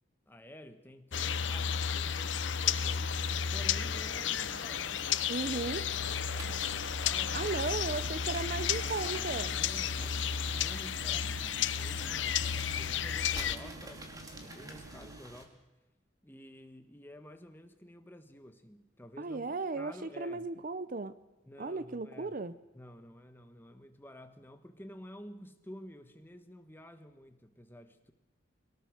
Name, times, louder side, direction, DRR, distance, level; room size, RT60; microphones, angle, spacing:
voice 1, 0.3-3.2 3.5-7.5 9.5-14.1 14.4-15.6 16.2-20.5 21.5-22.4 22.7-28.1, equal, 10° left, 7 dB, 1.4 m, -51 dB
sound 1, 1.1-13.6, left 8 dB, 75° left, 0.8 m, -33 dB
voice 2, 5.3-5.8 7.3-9.6 19.2-21.1 21.6-22.5, right 3 dB, 45° right, 15 dB, 0.6 m, -36 dB
sound 2, 5.9-15.5, right 1 dB, 20° right, 2.3 m, -49 dB
sound 3, 7.0-15.2, right 2 dB, 90° right, 0.9 m, -51 dB
23.0 x 18.0 x 6.6 m, 1.0 s
head